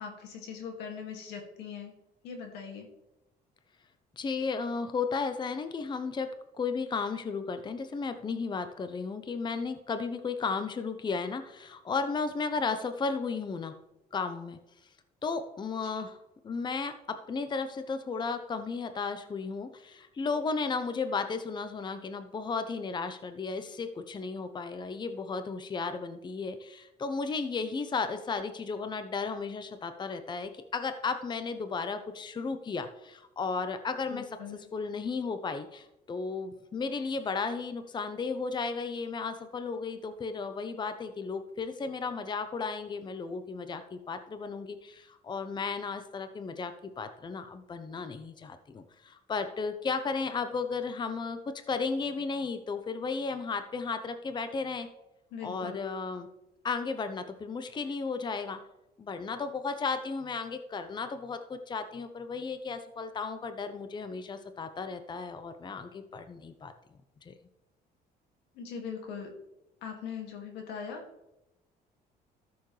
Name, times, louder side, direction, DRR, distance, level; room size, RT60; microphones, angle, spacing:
voice 1, 0.0-2.0 2.2-2.9 34.1-34.6 55.3-55.8 68.5-69.4 69.8-71.1, left 6 dB, 90° left, 3 dB, 2.2 m, -41 dB
voice 2, 4.2-6.3 6.5-13.7 14.1-14.6 15.2-16.2 16.4-34.2 34.7-51.4 51.7-54.9 55.4-56.3 56.6-58.6 59.0-66.7 67.2-67.3, left 4 dB, 25° left, 9 dB, 0.7 m, -34 dB
13.0 x 7.0 x 3.3 m, 0.90 s
cardioid pair, 110°, 17 cm